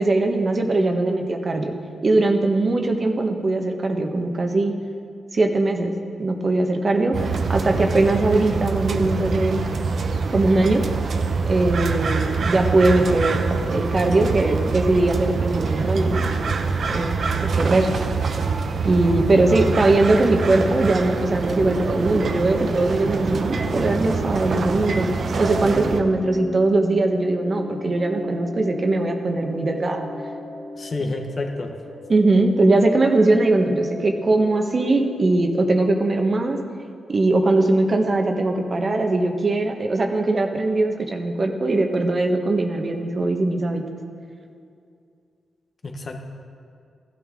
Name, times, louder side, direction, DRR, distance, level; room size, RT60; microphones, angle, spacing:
voice 1, 0.0-1.7 2.0-4.7 5.3-7.2 7.5-9.6 10.3-10.8 11.5-16.2 16.9-17.9 18.8-25.1 25.4-30.1 32.1-36.6 37.1-43.9, right 2 dB, 45° right, 4 dB, 1.3 m, -20 dB
sound 1, 7.1-26.0, right 4 dB, 65° right, 0.9 m, -25 dB
sound 2, 20.1-36.1, left 2 dB, 30° left, 1.0 m, -38 dB
voice 2, 30.8-31.8 45.8-46.2, left 2 dB, 50° left, 4 dB, 1.3 m, -29 dB
15.0 x 12.0 x 3.8 m, 2.4 s
cardioid pair, 70°, 0 cm